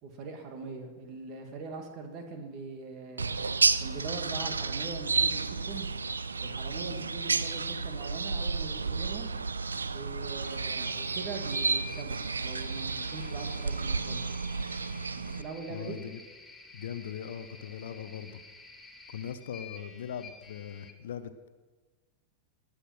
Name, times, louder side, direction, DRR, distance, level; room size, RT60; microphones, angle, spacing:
voice 1, 0.0-3.4 3.8-5.9 6.4-9.3 9.9-14.2 15.2-16.0, right 4 dB, 40° right, 4 dB, 2.4 m, -42 dB
sound 1, 3.2-15.4, right 4 dB, 75° right, 0.5 m, -31 dB
sound 2, 10.4-20.9, left 4 dB, 5° left, 1.6 m, -50 dB
voice 2, 15.7-16.2 16.7-18.4 19.1-21.5, left 8 dB, 60° left, 12 dB, 0.8 m, -40 dB
19.5 x 8.2 x 6.0 m, 1.3 s
figure-of-eight pair, 90°, 0 cm